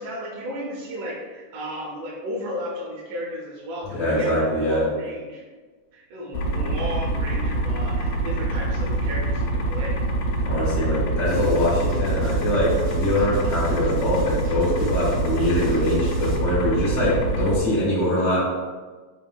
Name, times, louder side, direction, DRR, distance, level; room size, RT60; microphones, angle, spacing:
voice 1, 0.0-5.4 5.9-10.0 10.4-10.5, equal, 85° right, -2 dB, 2.4 m, -34 dB
voice 2, 3.9-4.9 10.4-18.5, left 1 dB, 40° left, -9 dB, 1.5 m, -23 dB
sound 1, 6.3-17.6, right 2 dB, 80° left, 1.6 m, -25 dB
sound 2, 11.3-16.3, right 2 dB, 60° right, 1.8 m, -38 dB
5.0 x 3.5 x 2.2 m, 1.4 s
omnidirectional pair, 3.5 m